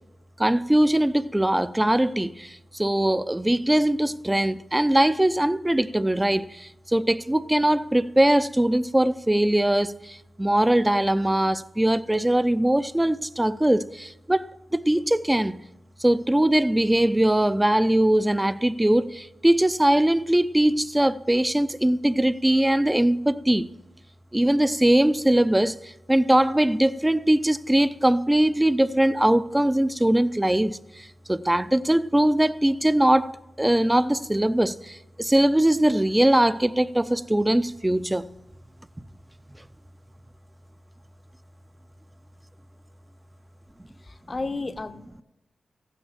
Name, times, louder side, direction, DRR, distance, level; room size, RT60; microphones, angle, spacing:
voice 1, 0.4-2.5 2.7-9.9 10.4-15.6 16.0-23.7 24.3-25.7 26.1-30.8 31.3-38.3, right 1 dB, 10° right, 0.5 m, -21 dB
voice 2, 44.0-45.2, left 3 dB, 35° left, 0.7 m, -33 dB
15.0 x 9.3 x 7.3 m
cardioid pair, 80°, 0 cm